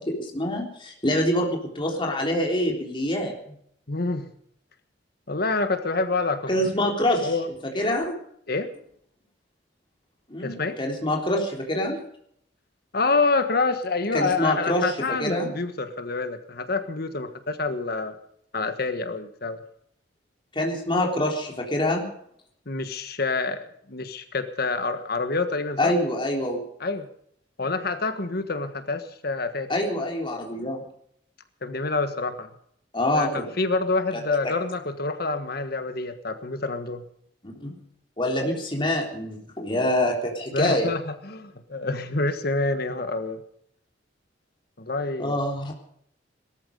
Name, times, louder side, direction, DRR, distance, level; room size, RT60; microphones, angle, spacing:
voice 1, 0.0-3.6 6.5-7.3 7.8-8.2 10.3-12.0 14.1-15.5 20.5-22.0 25.8-26.6 29.7-30.8 32.9-33.5 34.1-34.2 37.6-37.7 38.2-40.9 45.2-45.7, left 1 dB, 25° left, 0 dB, 3.6 m, -25 dB
voice 2, 3.9-4.3 5.3-6.7 7.2-7.5 8.5-8.7 10.4-10.8 12.9-18.1 18.5-19.6 22.7-25.9 26.8-27.1 27.6-29.7 31.6-32.5 33.1-37.0 40.5-43.4 44.8-45.3, left 3 dB, 55° left, 9 dB, 1.5 m, -27 dB
18.5 x 13.5 x 5.3 m, 0.67 s
head